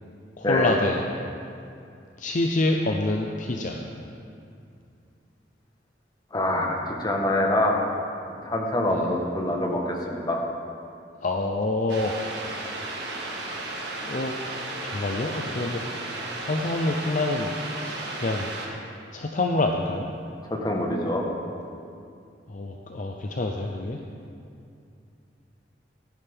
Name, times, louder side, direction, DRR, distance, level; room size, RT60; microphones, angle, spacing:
voice 1, 0.4-1.0 2.2-3.8 8.9-9.0 11.2-12.1 12.8-12.9 14.0-14.3 14.8-15.8 16.4-18.5 19.1-20.1 22.5-24.0, left 2 dB, 45° left, 2 dB, 0.6 m, -27 dB
voice 2, 6.3-7.9 8.3-10.4 20.5-21.2, left 1 dB, 25° left, 0 dB, 1.3 m, -25 dB
sound 1, 11.9-18.7, right 2 dB, 65° right, 1.7 m, -34 dB
15.5 x 10.0 x 3.6 m, 2.5 s
head